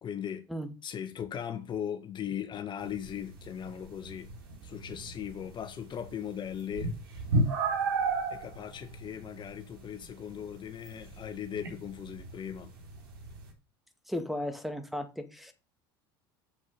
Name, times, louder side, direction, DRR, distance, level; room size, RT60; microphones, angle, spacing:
voice 1, 0.0-0.5 0.8-4.3 4.6-6.9 8.3-12.7, left 9 dB, 40° left, 1.7 m, -38 dB
sound 1, 2.8-13.5, right 3 dB, 80° right, 3.9 m, -35 dB
voice 2, 14.1-15.5, left 1 dB, ahead, 2.1 m, -35 dB
8.0 x 7.2 x 6.6 m
hypercardioid pair, 80°, 12 cm